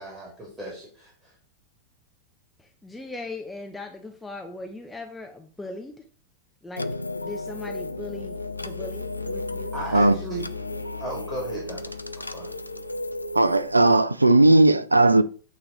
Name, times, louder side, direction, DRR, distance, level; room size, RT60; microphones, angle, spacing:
voice 1, 0.0-1.3 9.7-10.4 11.0-12.5, right 1 dB, 15° right, 2.3 m, -36 dB
voice 2, 2.6-6.1 6.6-6.9 7.2-9.7, left 2 dB, 5° left, 0.7 m, -39 dB
sound 1, 6.8-14.0, left 2 dB, 85° left, 0.4 m, -34 dB
voice 3, 13.3-15.2, right 2 dB, 80° right, 0.4 m, -17 dB
8.8 x 3.2 x 3.8 m
figure-of-eight pair, 90°, 0 cm